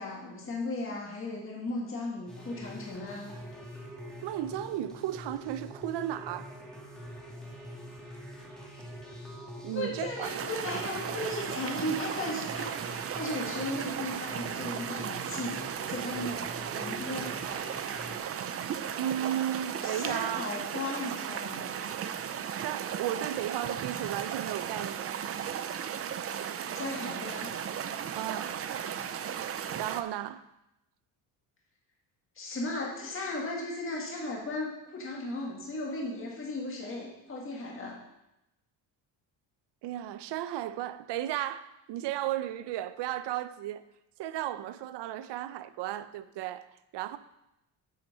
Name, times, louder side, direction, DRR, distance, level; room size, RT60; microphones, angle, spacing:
voice 1, 0.0-3.3 9.7-16.4 16.8-17.4 19.8-21.6 26.7-27.5 32.4-38.0, left 2 dB, 30° left, 2.0 m, -36 dB
sound 1, 2.3-18.2, equal, ahead, 1.6 m, -44 dB
voice 2, 4.2-6.5 9.6-10.3 18.9-20.5 22.6-25.2 28.2-28.5 29.8-30.5 39.8-43.8 44.2-47.2, right 12 dB, 70° right, 0.7 m, -34 dB
sound 2, 10.2-30.0, right 8 dB, 35° right, 0.4 m, -36 dB
8.6 x 5.9 x 5.4 m
cardioid pair, 135°, 43 cm